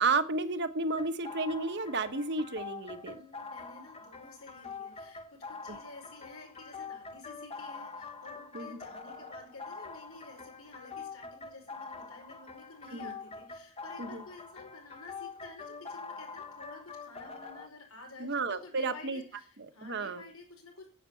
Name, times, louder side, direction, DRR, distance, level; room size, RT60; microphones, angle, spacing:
voice 1, 0.0-3.2 5.7-5.8 8.5-8.7 12.9-13.1 14.0-14.2 18.2-19.2 19.8-20.2, right 3 dB, 55° right, 10 dB, 1.2 m, -32 dB
sound 1, 1.0-17.7, left 4 dB, 30° left, 1.0 m, -45 dB
voice 2, 3.1-20.9, left 3 dB, 90° left, 3 dB, 5.1 m, -51 dB
10.0 x 8.3 x 8.4 m, 0.40 s
head